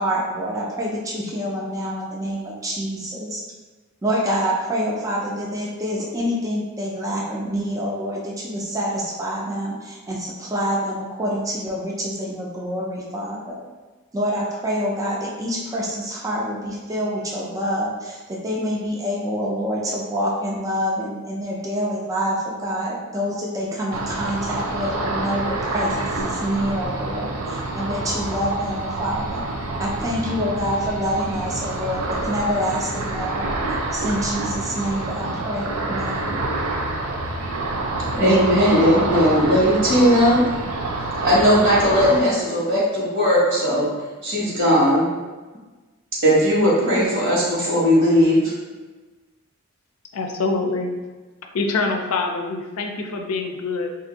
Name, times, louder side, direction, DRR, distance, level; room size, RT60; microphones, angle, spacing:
voice 1, 0.0-3.4 4.0-13.6 14.1-18.2 18.4-29.4 29.8-33.5 33.9-36.4, equal, 15° right, -4 dB, 0.5 m, -26 dB
Ocean, 23.9-42.2, right 2 dB, 85° right, 0.5 m, -27 dB
voice 2, 38.1-40.4 41.2-43.9 44.2-45.1 46.2-48.4, equal, 60° right, -6 dB, 1.3 m, -17 dB
voice 3, 50.1-50.9 51.5-53.9, left 3 dB, 85° left, 3 dB, 0.5 m, -25 dB
2.6 x 2.6 x 3.9 m, 1.3 s
head